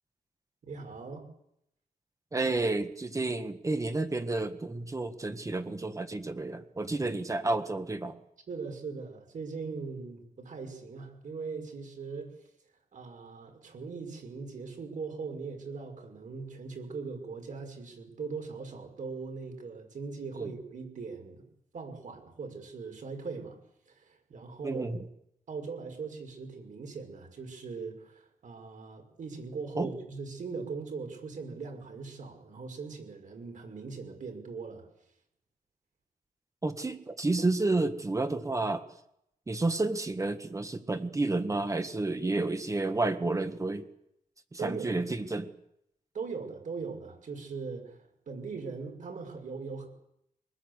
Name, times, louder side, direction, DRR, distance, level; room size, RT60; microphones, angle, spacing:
voice 1, 0.6-1.3 8.5-12.3 12.9-21.5 21.7-23.6 23.9-24.9 25.5-34.9 44.6-44.9 46.1-49.9, right 4 dB, 60° right, 4 dB, 6.1 m, -40 dB
voice 2, 2.3-8.2 20.4-20.5 24.6-25.0 29.8-29.9 36.6-38.8 39.5-43.9 44.6-45.5, right 2 dB, 20° right, 8 dB, 1.6 m, -30 dB
24.5 x 20.5 x 8.3 m, 0.78 s
wide cardioid pair, 135°, 15 cm